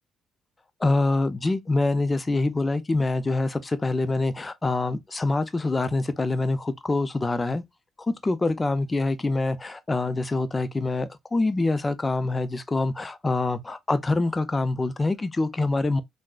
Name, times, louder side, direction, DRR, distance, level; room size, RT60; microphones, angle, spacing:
voice 1, 0.8-7.6 8.0-16.0, left 2 dB, 20° left, 0.5 m, -25 dB
3.6 x 2.1 x 2.3 m
cardioid pair, 85°, 0 cm